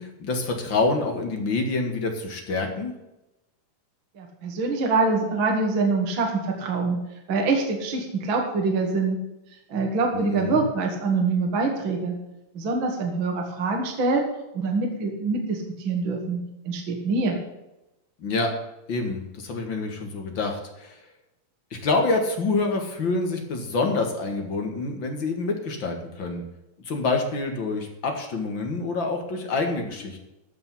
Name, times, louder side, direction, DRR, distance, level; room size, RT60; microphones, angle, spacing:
voice 1, 0.0-2.9 10.1-10.6 18.2-18.5 18.9-21.0 21.7-26.4 26.9-30.2, left 3 dB, 40° left, 3 dB, 2.2 m, -27 dB
voice 2, 4.1-7.0 7.3-9.2 9.7-12.2 12.5-14.3 14.5-16.4 16.6-17.4, right 3 dB, 40° right, 1 dB, 2.4 m, -25 dB
13.5 x 5.4 x 8.4 m, 0.94 s
omnidirectional pair, 3.8 m